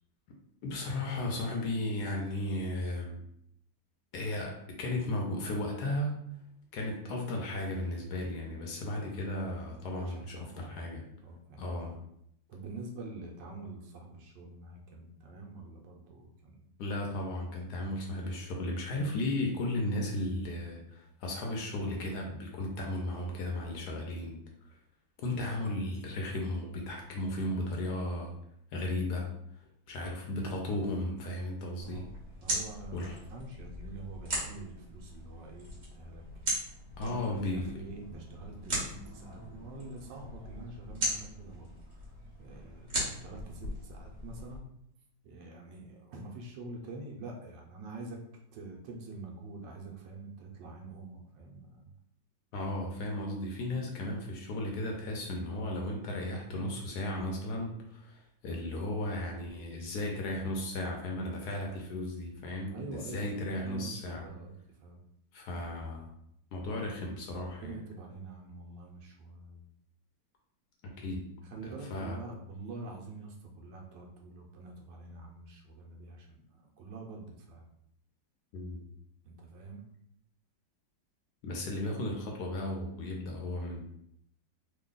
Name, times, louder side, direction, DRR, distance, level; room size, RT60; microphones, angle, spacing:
voice 1, 0.6-3.2 4.1-6.2 6.7-11.0 11.6-12.0 16.8-24.4 25.2-28.4 28.7-29.3 29.9-32.0 32.9-33.2 37.0-37.8 52.5-64.2 65.3-66.1 66.5-67.8 71.0-71.2 71.6-72.2 78.5-78.8 81.4-83.8, left 1 dB, 70° left, 0 dB, 1.1 m, -35 dB
voice 2, 9.8-10.8 11.2-11.6 12.5-16.8 31.8-32.1 32.4-36.3 37.0-41.7 42.4-44.7 45.2-48.2 48.5-51.9 62.7-64.5 64.8-65.1 67.3-69.6 71.5-77.7 79.2-79.8, right 3 dB, 80° right, 0 dB, 1.3 m, -46 dB
sound 1, 31.8-44.6, right 1 dB, 45° right, 1.4 m, -39 dB
3.3 x 2.2 x 3.7 m, 0.73 s
omnidirectional pair, 2.0 m